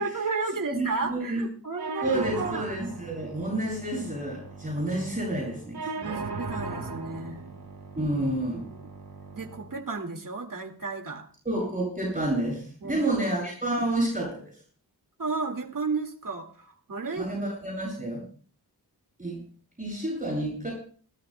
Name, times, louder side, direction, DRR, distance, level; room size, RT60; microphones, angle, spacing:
voice 1, 0.0-2.7 5.9-7.6 7.9-8.1 9.3-11.3 12.8-13.3 15.2-17.3, right 4 dB, 55° right, 3 dB, 2.1 m, -33 dB
voice 2, 0.7-1.4 2.0-5.8 6.1-6.2 8.0-8.7 11.4-14.4 17.2-18.2 19.2-19.4 19.8-20.7, right 1 dB, 20° right, -3 dB, 7.2 m, -29 dB
sound 1, 1.8-9.8, right 3 dB, 75° right, 2.3 m, -38 dB
29.0 x 14.0 x 2.2 m, 0.43 s
wide cardioid pair, 95°, 39 cm